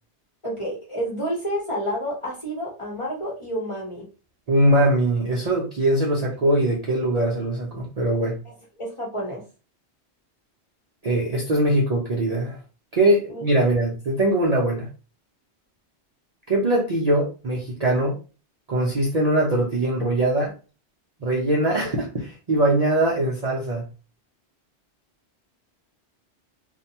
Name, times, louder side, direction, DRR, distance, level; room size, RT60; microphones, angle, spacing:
voice 1, 0.4-4.0 8.4-8.5 8.8-9.4 13.3-13.4, equal, 30° left, -3 dB, 0.9 m, -29 dB
voice 2, 4.5-8.4 11.0-12.6 12.9-14.9 16.5-18.1 18.7-20.5 21.2-23.8, right 1 dB, 45° right, -3 dB, 0.5 m, -21 dB
2.6 x 2.2 x 2.8 m, 0.34 s
omnidirectional pair, 1.1 m